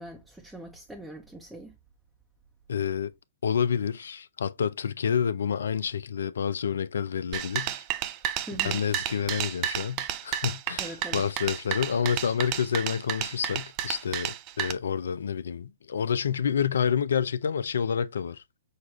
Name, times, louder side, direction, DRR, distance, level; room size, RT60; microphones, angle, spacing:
voice 1, 0.0-1.8 8.5-8.9 10.8-11.2, right 1 dB, 5° right, 0.8 m, -42 dB
voice 2, 2.7-3.1 3.4-7.8 8.5-18.4, left 7 dB, 70° left, 0.4 m, -28 dB
sound 1, 7.3-14.7, right 11 dB, 35° right, 0.5 m, -31 dB
6.4 x 2.4 x 3.0 m
figure-of-eight pair, 115°, 0 cm